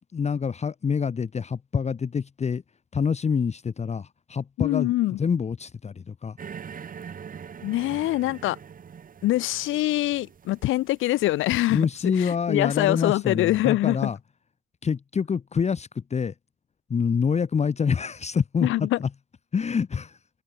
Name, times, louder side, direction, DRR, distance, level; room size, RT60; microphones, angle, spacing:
voice 1, 0.1-2.6 2.9-4.9 5.2-6.4 11.7-14.2 14.8-16.3 16.9-19.1 19.5-20.2, left 6 dB, 35° left, 1.0 m, -26 dB
voice 2, 4.6-5.2 7.6-8.6 9.2-11.9 12.1-14.1 18.6-19.0, left 16 dB, 90° left, 1.0 m, -24 dB
sound 1, 6.4-12.0, right 7 dB, 45° right, 1.7 m, -43 dB
cardioid pair, 90°, 20 cm